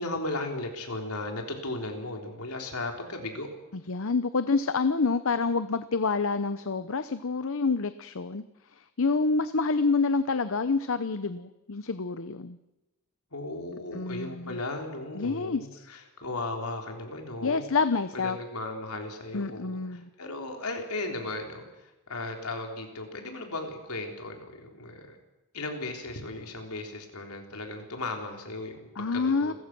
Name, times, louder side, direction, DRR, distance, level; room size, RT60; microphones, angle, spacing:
voice 1, 0.0-3.5 13.3-17.6 18.1-25.2 25.5-29.5, left 2 dB, 80° left, 3 dB, 3.9 m, -36 dB
voice 2, 3.9-8.4 8.7-12.6 13.9-14.6 15.1-15.9 17.4-18.4 19.3-20.1 29.0-29.5, left 4 dB, 65° left, 12 dB, 0.8 m, -27 dB
29.0 x 15.0 x 6.1 m, 1.0 s
head